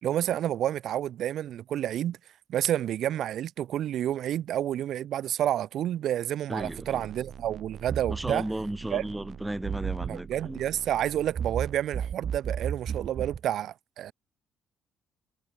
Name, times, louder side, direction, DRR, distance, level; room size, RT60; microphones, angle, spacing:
voice 1, 0.0-2.2 2.5-8.4 8.9-9.0 10.1-14.1, right 11 dB, 75° right, 2.7 m, -29 dB
voice 2, 6.5-7.1 8.1-10.6, right 1 dB, 10° right, 1.6 m, -34 dB
sound 1, 6.6-13.4, right 8 dB, 55° right, 4.8 m, -36 dB
cardioid pair, 90°, 0 cm